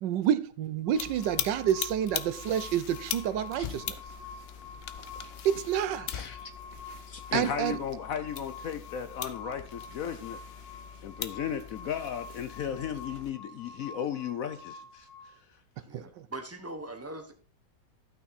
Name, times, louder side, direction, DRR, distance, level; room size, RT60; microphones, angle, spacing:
voice 1, 0.0-4.0 5.4-6.1 7.3-7.8 15.9-16.3, right 10 dB, 85° right, 1.4 m, -29 dB
sound 1, 0.9-13.3, left 9 dB, 85° left, 0.5 m, -41 dB
sound 2, 0.9-15.3, left 3 dB, 30° right, 2.4 m, -48 dB
voice 2, 4.3-5.5 6.1-10.4 11.0-15.6, left 8 dB, 65° left, 0.9 m, -36 dB
voice 3, 15.8-17.3, right 2 dB, 10° right, 0.8 m, -41 dB
12.5 x 5.9 x 4.1 m
omnidirectional pair, 1.9 m